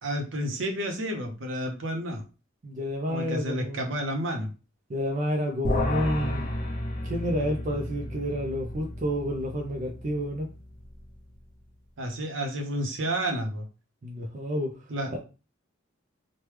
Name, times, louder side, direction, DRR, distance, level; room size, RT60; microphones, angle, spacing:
voice 1, 0.0-2.2 3.1-4.5 12.0-13.6 14.9-15.1, equal, 70° right, 0.7 m, -30 dB
voice 2, 2.6-3.9 4.9-6.5 7.0-10.5 14.0-14.7 15.1-15.2, equal, 40° right, 0.4 m, -30 dB
sound 1, 5.6-11.2, left 1 dB, 40° left, 0.8 m, -32 dB
3.0 x 2.2 x 3.2 m
head